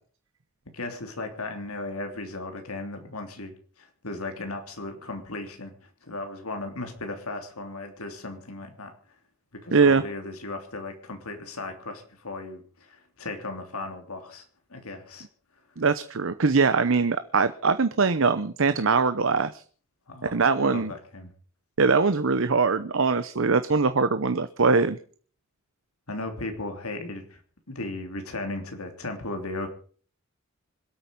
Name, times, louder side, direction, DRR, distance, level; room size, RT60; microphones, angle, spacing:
voice 1, 0.7-3.5 3.8-5.7 6.0-8.9 9.5-14.4 14.7-15.3 20.1-20.3 20.6-21.3 26.1-27.4 27.7-29.7, left 2 dB, 90° left, 5 dB, 3.2 m, -36 dB
voice 2, 9.7-10.0 15.8-19.6 20.3-20.9 21.8-25.0, right 4 dB, 60° right, 11 dB, 0.8 m, -22 dB
25.5 x 8.8 x 5.3 m, 0.44 s
head